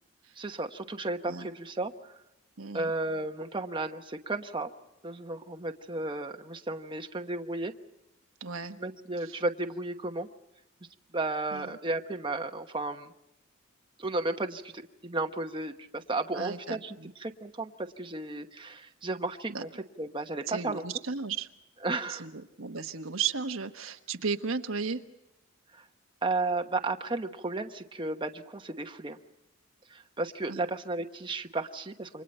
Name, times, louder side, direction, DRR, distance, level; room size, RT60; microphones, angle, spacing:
voice 1, 0.4-2.2 2.7-4.7 5.0-7.7 8.8-10.3 11.1-13.1 14.0-19.7 20.0-20.8 21.8-22.3 25.7-25.8 26.2-29.2 29.9-32.2, right 2 dB, 25° right, 5 dB, 1.1 m, -34 dB
voice 2, 2.6-2.9 8.4-8.8 9.3-9.4 11.5-11.8 16.3-17.1 19.5-19.7 20.5-21.5 22.1-25.0 30.5-30.6, right 5 dB, 80° right, 6 dB, 1.3 m, -35 dB
29.0 x 25.5 x 4.4 m, 0.89 s
head